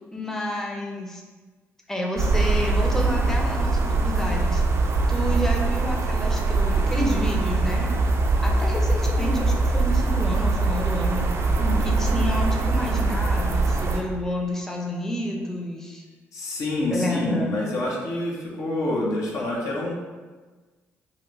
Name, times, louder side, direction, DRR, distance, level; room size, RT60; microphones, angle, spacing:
voice 1, 0.1-1.2 1.9-4.6 5.1-7.9 8.4-11.3 11.8-16.0 16.9-17.5, equal, 5° left, -1 dB, 0.6 m, -29 dB
sound 1, 2.2-14.0, right 3 dB, 50° right, 0.4 m, -22 dB
voice 2, 16.3-19.9, left 1 dB, 65° left, -3 dB, 0.7 m, -27 dB
2.9 x 2.1 x 3.8 m, 1.3 s
hypercardioid pair, 50°, 6 cm